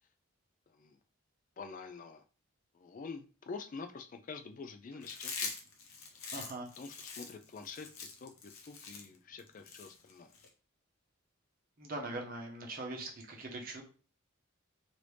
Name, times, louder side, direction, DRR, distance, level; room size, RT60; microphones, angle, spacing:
voice 1, 0.7-1.0 1.6-2.2 2.7-5.5 6.1-6.3 6.8-10.4, left 4 dB, 40° left, 7 dB, 0.3 m, -47 dB
Chewing mastication, 5.0-10.5, left 5 dB, 80° left, 0.7 m, -44 dB
voice 2, 6.3-6.7 11.8-13.8, right 2 dB, 40° right, 0 dB, 0.8 m, -41 dB
3.2 x 2.6 x 3.2 m, 0.38 s
head